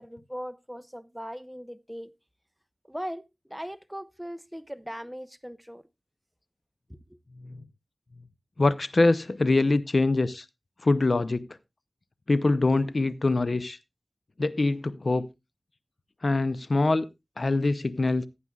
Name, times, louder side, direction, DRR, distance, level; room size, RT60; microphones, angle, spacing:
voice 1, 0.0-2.1 2.8-5.8 6.9-7.2, equal, 5° right, 0.8 m, -39 dB
voice 2, 8.6-10.5 10.8-11.5 12.3-13.8 14.4-15.3 16.2-17.1 17.4-18.3, left 2 dB, 60° left, 0.5 m, -24 dB
15.0 x 9.7 x 2.3 m
wide cardioid pair, 55°, 0 cm